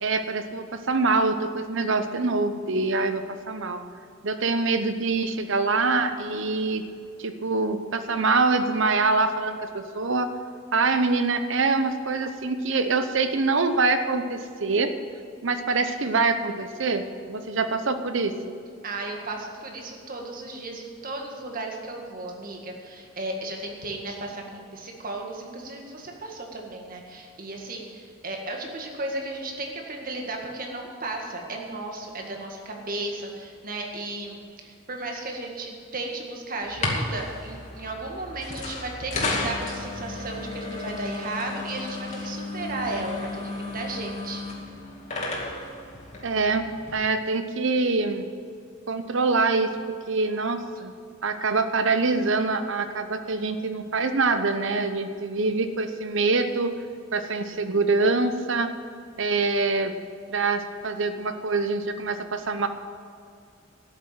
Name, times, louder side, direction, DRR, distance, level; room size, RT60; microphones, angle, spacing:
voice 1, 0.0-3.8 4.2-6.8 7.2-10.3 10.7-14.9 15.4-18.5 46.2-46.6 46.9-48.3 48.9-49.8 50.1-50.9 51.2-56.7 57.1-58.7 59.2-59.9 60.3-62.7, right 3 dB, 60° right, 9 dB, 0.9 m, -25 dB
voice 2, 18.8-44.4, right 2 dB, 45° right, 1 dB, 1.9 m, -35 dB
sound 1, 36.6-46.9, left 2 dB, 35° left, 2.3 m, -33 dB
12.5 x 7.3 x 9.0 m, 2.3 s
head